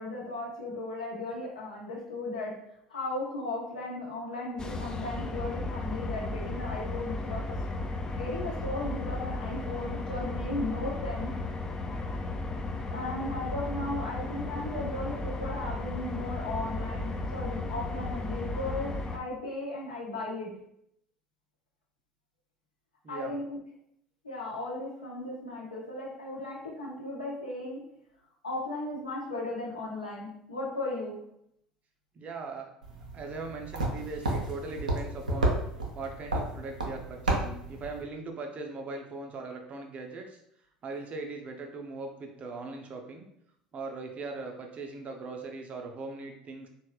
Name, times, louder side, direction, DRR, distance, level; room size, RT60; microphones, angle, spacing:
voice 1, 0.0-2.5 2.9-7.4 8.1-11.3 12.9-20.5 23.1-23.6 24.2-27.8 28.4-31.1, left 2 dB, 80° left, -5 dB, 0.9 m, -36 dB
sound 1, 4.6-19.2, left 2 dB, 20° left, 0.4 m, -35 dB
voice 2, 23.0-23.3 32.1-32.7 33.1-35.6 35.9-40.4 40.8-43.3 43.7-46.7, right 3 dB, 35° right, 3 dB, 0.5 m, -39 dB
sound 2, 32.8-38.0, right 2 dB, 80° right, 0.5 m, -32 dB
2.8 x 2.3 x 3.0 m, 0.74 s
figure-of-eight pair, 65°, 4 cm